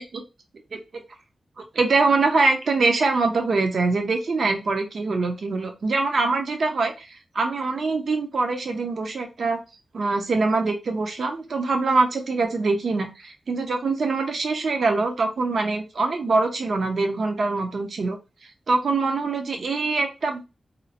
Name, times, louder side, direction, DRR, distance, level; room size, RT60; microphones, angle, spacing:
voice 1, 1.7-9.6 9.9-18.2 18.7-20.5, right 3 dB, 70° right, 4 dB, 0.6 m, -23 dB
2.8 x 2.0 x 2.7 m, 0.27 s
cardioid pair, 75°, 0 cm